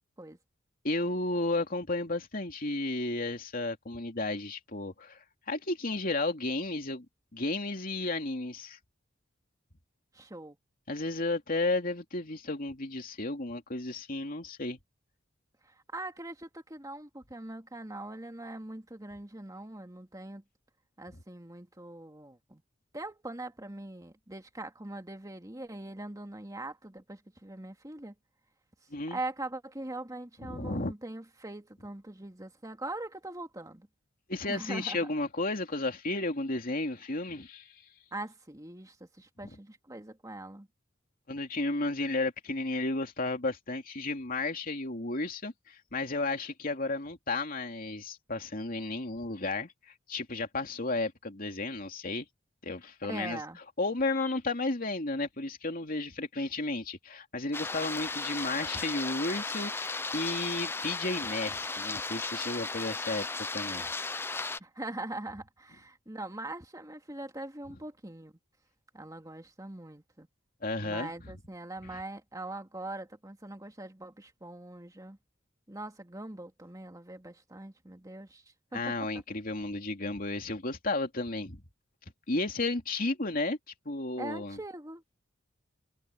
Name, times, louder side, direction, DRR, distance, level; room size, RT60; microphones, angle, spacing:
voice 1, 0.8-7.0 7.3-8.8 10.9-14.8 28.9-29.2 30.4-30.9 34.3-37.7 41.3-52.3 52.6-53.4 53.8-63.9 67.7-67.8 70.6-71.3 71.8-71.9 78.7-81.6 82.3-83.6 83.8-84.6, left 2 dB, 50° left, 2.9 m, -33 dB
voice 2, 10.1-10.6 15.6-20.4 21.0-22.6 22.9-28.1 29.1-33.9 34.5-35.0 38.1-40.7 53.0-53.6 64.6-68.3 68.9-70.3 70.8-75.2 75.7-78.4 78.7-78.9 84.2-85.0, right 2 dB, 20° right, 2.5 m, -42 dB
sound 1, 57.5-64.6, left 3 dB, 10° left, 0.4 m, -35 dB
head